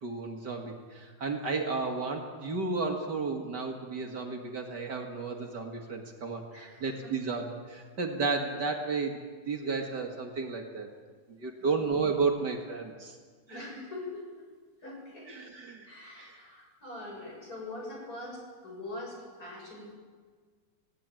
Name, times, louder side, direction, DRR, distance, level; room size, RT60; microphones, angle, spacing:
voice 1, 0.0-10.9 11.3-13.2 13.5-13.7 15.3-15.9, right 4 dB, 55° right, 2 dB, 2.4 m, -33 dB
voice 2, 6.5-7.0 9.6-9.7 11.6-11.8 13.5-14.2 14.8-15.3 15.9-19.9, left 2 dB, 45° left, -2 dB, 7.0 m, -43 dB
19.0 x 17.0 x 9.0 m, 1.5 s
omnidirectional pair, 2.3 m